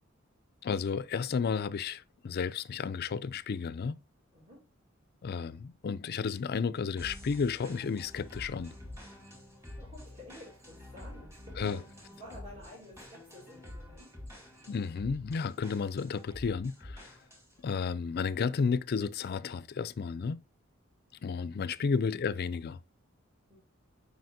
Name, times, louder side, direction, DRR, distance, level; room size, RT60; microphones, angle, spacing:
voice 1, 0.6-4.0 5.2-8.8 11.6-11.8 14.7-17.1 17.6-20.4 21.2-22.8, left 5 dB, 50° left, 0.4 m, -32 dB
voice 2, 4.3-4.7 9.8-11.8 12.2-14.2 21.9-22.1 23.5-23.6, left 1 dB, 35° right, 3.1 m, -51 dB
sound 1, 7.0-17.6, left 1 dB, 15° right, 2.7 m, -48 dB
7.7 x 5.3 x 2.6 m
head